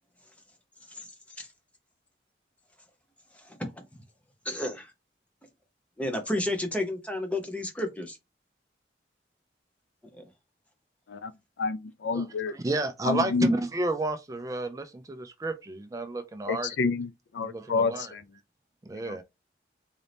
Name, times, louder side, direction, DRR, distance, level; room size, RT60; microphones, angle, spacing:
voice 1, 4.4-4.9 6.0-8.2 10.1-10.2, left 1 dB, 5° left, 0.8 m, -31 dB
voice 2, 11.6-12.5 13.1-13.5 16.5-17.1 17.3-18.2 19.1-19.2, left 4 dB, 75° left, 0.4 m, -29 dB
voice 3, 12.1-16.7 17.4-18.1 18.8-19.2, right 2 dB, 20° right, 0.3 m, -31 dB
3.9 x 2.7 x 3.3 m
head